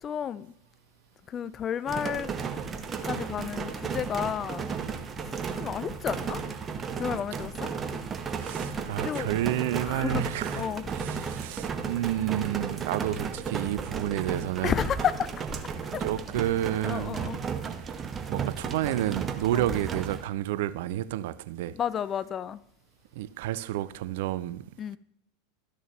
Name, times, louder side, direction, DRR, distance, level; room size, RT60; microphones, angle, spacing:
voice 1, 0.0-0.5 1.3-2.3 3.0-4.7 5.2-6.4 6.9-7.7 9.0-9.3 9.8-10.3 10.5-10.9 14.6-15.3 15.6-16.0 16.9-17.4 19.5-19.7 21.7-22.6 24.8-25.0, left 8 dB, 30° left, 0.4 m, -32 dB
sound 1, 1.9-20.2, right 6 dB, 25° right, 0.9 m, -34 dB
voice 2, 8.4-10.7 10.9-14.8 16.0-17.5 18.3-21.8 23.2-24.6, right 13 dB, 60° right, 0.4 m, -30 dB
12.5 x 6.3 x 3.2 m
figure-of-eight pair, 85°, 0 cm